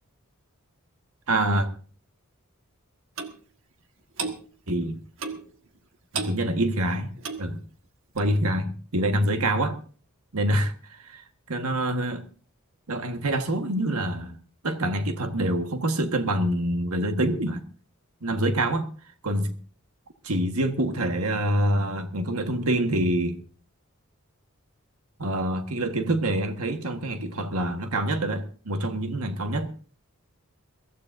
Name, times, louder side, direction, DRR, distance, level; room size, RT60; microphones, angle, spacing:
voice 1, 1.3-1.7 4.7-5.0 6.1-7.1 7.4-7.6 8.1-9.8 10.3-12.2 12.9-14.4 14.6-17.7 18.2-18.9 19.2-19.6 20.2-23.4 25.2-29.7, right 1 dB, 85° right, 6 dB, 1.5 m, -26 dB
Clock, 3.2-3.4 4.2-4.4 5.2-5.5 6.1-6.4 7.2-7.5 8.2-8.3, right 5 dB, 60° right, 1.6 m, -32 dB
23.0 x 15.0 x 2.7 m, 0.40 s
head